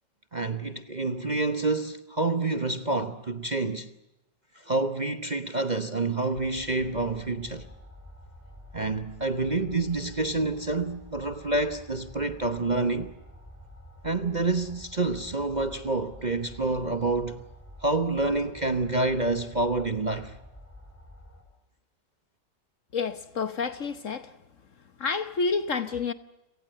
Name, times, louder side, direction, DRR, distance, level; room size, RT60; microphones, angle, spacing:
voice 1, 0.3-3.9 4.5-7.7 8.7-13.1 14.0-17.4 17.8-20.4, right 2 dB, 30° right, 1.0 m, -28 dB
sound 1, 6.3-21.4, equal, 5° left, 5.6 m, -48 dB
voice 2, 22.9-24.4 25.0-26.1, left 5 dB, 50° left, 1.3 m, -29 dB
29.5 x 18.5 x 7.8 m
omnidirectional pair, 1.8 m